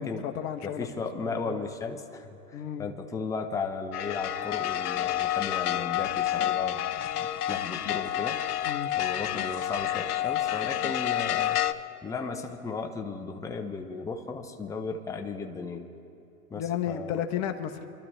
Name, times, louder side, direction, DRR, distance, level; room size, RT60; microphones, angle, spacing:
voice 1, 0.0-0.9 1.1-1.7 2.5-2.9 8.6-8.9 16.5-17.8, left 9 dB, 35° left, 6 dB, 1.2 m, -33 dB
voice 2, 0.6-8.4 9.0-11.6 12.0-15.9 16.5-17.2, left 4 dB, 5° left, 4 dB, 0.7 m, -35 dB
sound 1, 3.9-11.7, left 12 dB, 75° left, 0.7 m, -29 dB
26.0 x 12.5 x 3.4 m, 3.0 s
hypercardioid pair, 120°, 46 cm